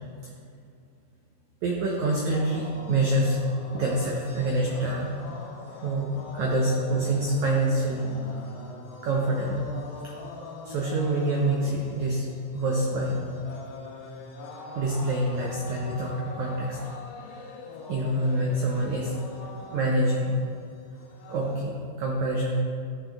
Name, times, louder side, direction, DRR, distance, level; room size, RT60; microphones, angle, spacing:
voice 1, 1.6-3.4 3.7-5.1 5.8-8.1 9.0-9.7 10.0-10.1 10.6-12.2 12.5-13.2 14.7-16.8 17.9-19.1 19.7-20.3 21.3-22.6, right 1 dB, 90° right, -2 dB, 1.6 m, -26 dB
sound 1, 2.3-21.6, left 3 dB, 75° left, 2.6 m, -42 dB
13.5 x 5.6 x 3.5 m, 2.3 s
omnidirectional pair, 4.5 m